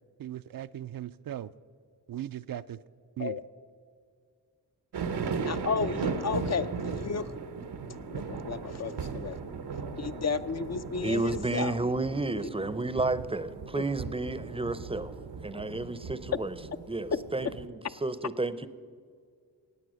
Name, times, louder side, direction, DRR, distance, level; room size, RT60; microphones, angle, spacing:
voice 1, 0.2-1.5 2.1-2.8 3.2-3.4, right 12 dB, 60° right, 13 dB, 0.5 m, -38 dB
sound 1, 4.9-17.7, right 5 dB, 85° right, 1.0 m, -37 dB
voice 2, 5.4-7.3 8.1-11.8 12.3-12.6 13.8-13.9 16.3-16.4 17.1-17.2, left 5 dB, 45° left, 11 dB, 0.5 m, -33 dB
voice 3, 11.0-15.1 15.4-16.5 16.9-17.5 18.0-18.7, right 2 dB, 15° right, 14 dB, 0.6 m, -31 dB
17.5 x 8.4 x 6.3 m, 2.1 s
cardioid pair, 65°, 39 cm